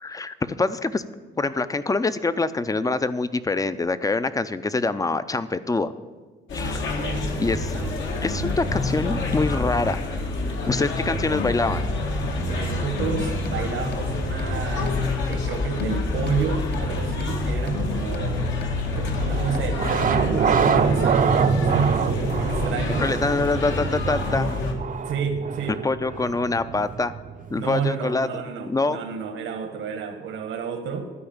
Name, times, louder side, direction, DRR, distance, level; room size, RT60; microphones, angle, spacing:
voice 1, 0.0-1.0 1.4-5.9 6.5-6.9 7.4-7.7 8.2-10.0 10.7-11.9 23.0-24.5 25.8-27.1 27.5-28.4 28.7-29.0, left 3 dB, 15° left, 13 dB, 0.5 m, -25 dB
sound 1, 6.5-24.7, left 2 dB, 70° left, 1.5 m, -27 dB
voice 2, 6.8-8.6 12.5-18.5 18.9-23.1 25.0-25.8 27.5-31.1, right 6 dB, 80° right, 7 dB, 1.3 m, -31 dB
sound 2, 13.0-20.5, left 2 dB, 55° left, 1.0 m, -34 dB
sound 3, 18.9-27.7, right 6 dB, 40° right, 0.6 m, -25 dB
12.5 x 4.7 x 8.6 m, 1.3 s
cardioid pair, 90°, 20 cm